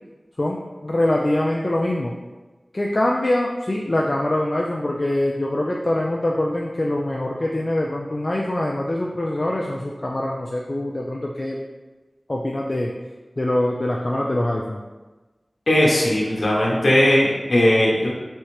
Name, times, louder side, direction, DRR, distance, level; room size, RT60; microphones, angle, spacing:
voice 1, 0.4-2.1 2.7-11.6 12.3-12.9 13.4-14.8, left 1 dB, 45° left, -2 dB, 0.3 m, -24 dB
voice 2, 15.7-18.1, left 1 dB, 65° left, -5 dB, 0.8 m, -18 dB
3.6 x 3.2 x 3.0 m, 1.2 s
wide cardioid pair, 50°, 0 cm